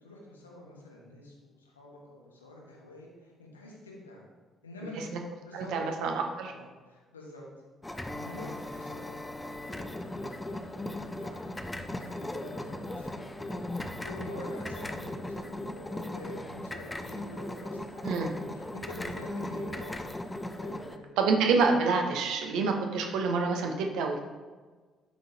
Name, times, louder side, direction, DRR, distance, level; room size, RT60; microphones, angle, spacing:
voice 1, 0.0-4.2 4.6-5.0 5.5-6.2 6.4-7.4 7.8-9.2 9.6-10.8 11.1-11.5 11.8-20.0 20.5-21.2, left 1 dB, 80° left, -2 dB, 1.0 m, -47 dB
voice 2, 5.5-6.5 18.0-18.3 21.2-24.2, right 4 dB, 60° right, 3 dB, 0.7 m, -27 dB
sound 1, 7.8-21.0, left 1 dB, 15° left, 0.5 m, -38 dB
11.0 x 3.8 x 2.7 m, 1.4 s
figure-of-eight pair, 45°, 0 cm